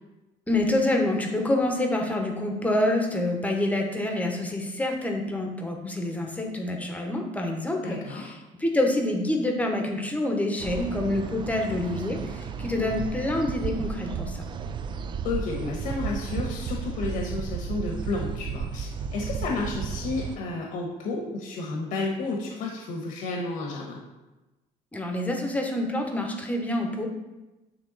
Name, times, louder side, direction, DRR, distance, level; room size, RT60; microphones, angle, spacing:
voice 1, 0.5-14.5 24.9-27.1, left 1 dB, 10° left, 2 dB, 1.0 m, -27 dB
voice 2, 7.8-8.3 12.8-12.9 15.2-24.0, left 3 dB, 80° left, 0 dB, 1.1 m, -31 dB
sound 1, 10.6-20.4, right 6 dB, 35° right, 0.3 m, -33 dB
8.6 x 3.5 x 4.0 m, 1.1 s
cardioid pair, 140°, 14 cm